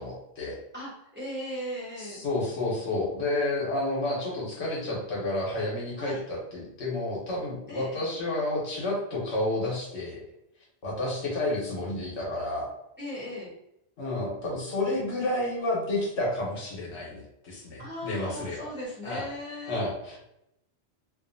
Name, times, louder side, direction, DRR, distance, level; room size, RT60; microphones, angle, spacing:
voice 1, 0.0-0.6 2.0-10.2 10.8-12.7 14.0-18.7 19.0-19.3 19.7-20.2, left 2 dB, 80° left, -4 dB, 1.2 m, -30 dB
voice 2, 0.7-2.2 6.0-6.2 7.7-8.1 13.0-13.5 17.8-19.8, equal, 10° right, -8 dB, 0.9 m, -38 dB
2.6 x 2.5 x 2.6 m, 0.81 s
omnidirectional pair, 1.1 m